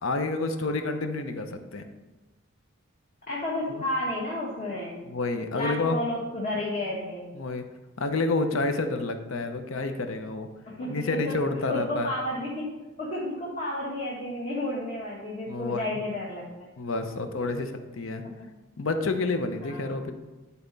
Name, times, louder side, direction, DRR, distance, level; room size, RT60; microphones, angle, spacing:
voice 1, 0.0-1.9 3.7-3.8 5.0-6.0 7.3-7.7 8.0-10.5 10.9-12.1 15.5-16.0 16.8-18.2 18.8-20.1, left 3 dB, 70° left, 7 dB, 0.7 m, -29 dB
voice 2, 3.3-5.0 5.5-7.3 10.7-11.3 11.7-12.7 13.0-16.7 19.6-20.0, left 1 dB, 40° left, -6 dB, 1.4 m, -32 dB
11.0 x 4.2 x 4.0 m, 1.1 s
head